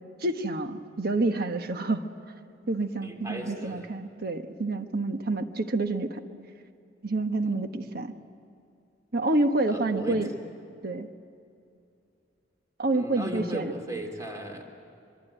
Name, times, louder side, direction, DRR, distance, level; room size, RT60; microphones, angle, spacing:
voice 1, 0.2-2.1 2.7-6.2 7.0-8.1 9.1-10.3 10.8-11.1 12.8-13.7, right 2 dB, 55° right, 7 dB, 1.3 m, -28 dB
voice 2, 3.0-3.9 7.4-7.5 9.7-10.2 12.9-14.6, right 1 dB, 20° right, 2 dB, 3.0 m, -36 dB
25.0 x 23.0 x 9.1 m, 2.5 s
head